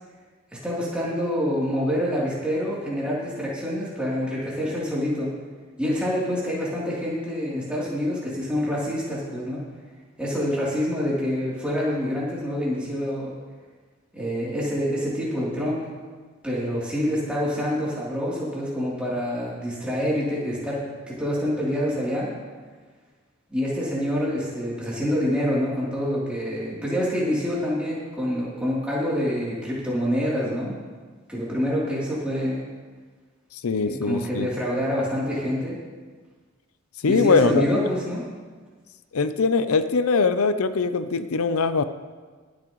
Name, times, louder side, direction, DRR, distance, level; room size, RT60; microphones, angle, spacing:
voice 1, 0.6-5.3 5.8-9.6 10.2-13.3 14.1-15.8 16.4-22.3 23.5-30.8 31.3-32.6 33.8-35.8 37.0-38.2, equal, 5° right, -8 dB, 3.1 m, -26 dB
voice 2, 33.5-34.5 37.0-37.7 39.1-41.8, left 4 dB, 85° left, 11 dB, 0.6 m, -22 dB
22.0 x 8.8 x 3.1 m, 1.5 s
head